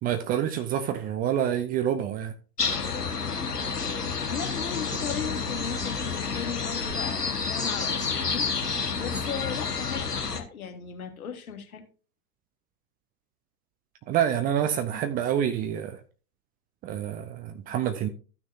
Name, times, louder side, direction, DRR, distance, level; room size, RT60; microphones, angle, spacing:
voice 1, 0.0-2.3 14.1-16.0 16.8-18.1, right 10 dB, 20° right, 0.5 m, -27 dB
sound 1, 2.6-10.4, left 5 dB, 85° left, 1.3 m, -29 dB
voice 2, 4.3-8.5 8.9-10.1 10.3-11.9, left 7 dB, 65° left, 1.8 m, -36 dB
14.0 x 6.2 x 2.5 m
figure-of-eight pair, 95°, 46 cm